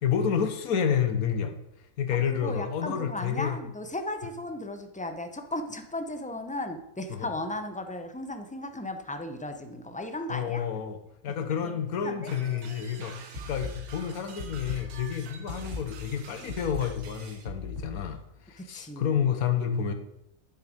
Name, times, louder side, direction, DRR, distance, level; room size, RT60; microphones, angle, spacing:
voice 1, 0.0-1.5 2.0-3.6 7.1-7.3 10.3-11.0 11.2-13.1 13.4-18.2 18.5-19.9, left 7 dB, 75° left, 8 dB, 1.4 m, -29 dB
voice 2, 2.3-10.6 11.6-11.8 12.0-12.3 18.6-19.3, left 1 dB, 10° left, 6 dB, 0.4 m, -36 dB
sound 1, 12.3-17.5, right 6 dB, 85° right, 1.5 m, -48 dB
sound 2, 13.3-18.3, left 4 dB, 55° right, 2.8 m, -39 dB
9.4 x 7.5 x 5.2 m, 0.85 s
omnidirectional pair, 1.5 m